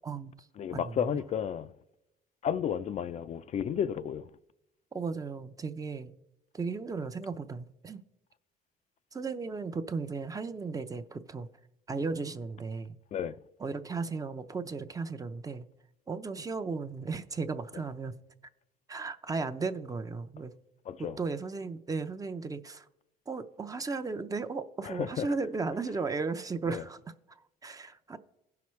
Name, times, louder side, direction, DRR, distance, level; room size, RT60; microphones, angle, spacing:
voice 1, 0.0-0.5 0.7-1.2 4.9-6.2 6.5-8.0 9.1-11.5 11.9-13.0 13.6-15.6 16.1-18.1 18.9-20.5 21.0-22.9 23.3-28.2, right 4 dB, 20° right, 0.5 m, -35 dB
voice 2, 0.6-1.7 2.4-4.3 13.1-13.4 20.9-21.2 24.9-25.3 26.7-26.8, left 8 dB, 45° left, 0.4 m, -32 dB
16.5 x 5.8 x 3.1 m
cardioid pair, 110°, 17 cm